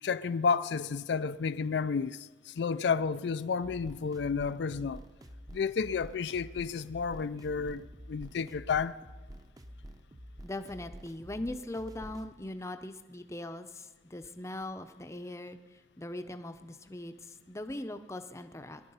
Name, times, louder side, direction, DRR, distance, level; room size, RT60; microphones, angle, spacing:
voice 1, 0.0-5.0 5.5-9.0, left 5 dB, 70° left, 0.4 m, -31 dB
sound 1, 3.6-12.3, equal, 20° right, 0.7 m, -49 dB
voice 2, 10.4-15.6 16.0-18.8, left 1 dB, 15° left, 0.6 m, -40 dB
21.5 x 11.5 x 5.5 m
head